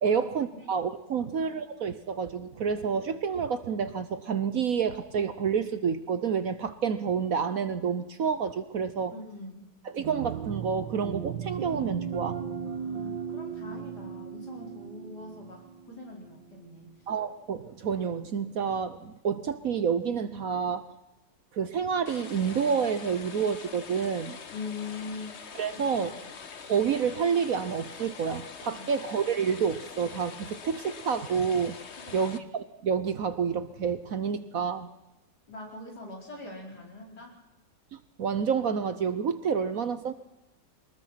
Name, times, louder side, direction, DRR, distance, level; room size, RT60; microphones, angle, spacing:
voice 1, 0.0-9.1 9.9-12.4 17.1-20.8 21.5-24.4 25.5-26.1 26.6-31.8 32.1-32.4 32.8-34.9 37.9-40.1, right 6 dB, 55° right, 12 dB, 1.2 m, -29 dB
voice 2, 9.1-9.6 12.6-16.9 24.5-25.4 25.7-26.2 28.7-28.9 32.0-32.4 35.5-37.3, left 3 dB, 60° left, -1 dB, 5.4 m, -42 dB
sound 1, 10.0-16.6, right 8 dB, 80° right, 1.7 m, -37 dB
sound 2, 22.1-32.4, left 6 dB, 45° left, 1.2 m, -44 dB
23.0 x 20.0 x 5.9 m, 0.97 s
omnidirectional pair, 1.9 m